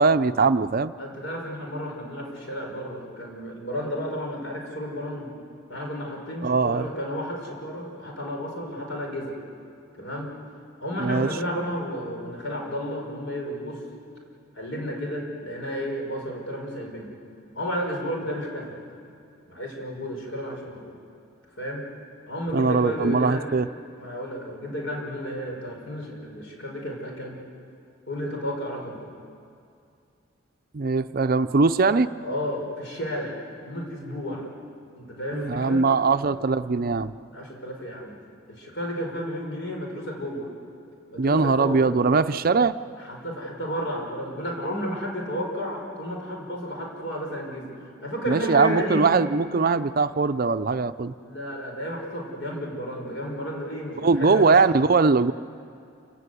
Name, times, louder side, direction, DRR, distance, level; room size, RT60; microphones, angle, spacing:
voice 1, 0.0-0.9 6.4-6.9 11.0-11.3 22.5-23.7 30.7-32.1 35.3-37.1 41.2-42.8 48.3-51.1 54.0-55.3, right 4 dB, 45° right, 11 dB, 0.5 m, -21 dB
voice 2, 1.0-5.3 5.7-9.4 10.0-10.4 10.8-13.8 14.5-17.1 17.5-18.7 19.5-21.0 21.5-21.9 22.3-23.5 24.0-27.4 28.1-29.0 32.2-34.5 34.9-35.8 37.3-38.1 38.5-40.5 41.1-41.8 43.0-49.2 51.2-54.6, equal, 65° left, 0 dB, 5.6 m, -32 dB
28.0 x 17.5 x 8.3 m, 2.5 s
head